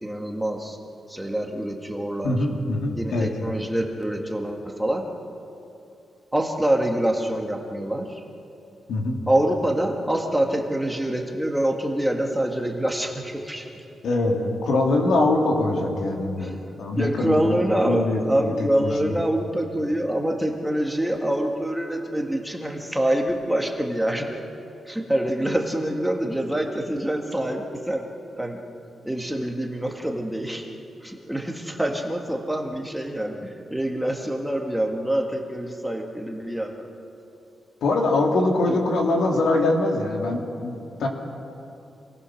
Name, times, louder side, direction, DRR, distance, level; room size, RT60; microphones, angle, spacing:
voice 1, 0.0-0.8 1.1-2.4 2.9-5.1 6.3-8.2 9.3-13.8 16.4-16.5 16.9-24.4 24.9-28.1 28.4-28.6 29.0-30.7 31.0-36.9 38.7-38.9, right 1 dB, 5° right, 1 dB, 1.7 m, -26 dB
voice 2, 2.2-3.3 8.9-9.2 14.0-16.5 16.8-17.6 17.9-19.1 37.8-41.1, left 2 dB, 85° left, 0 dB, 3.1 m, -23 dB
26.5 x 19.5 x 6.4 m, 2.7 s
wide cardioid pair, 150°, 0 cm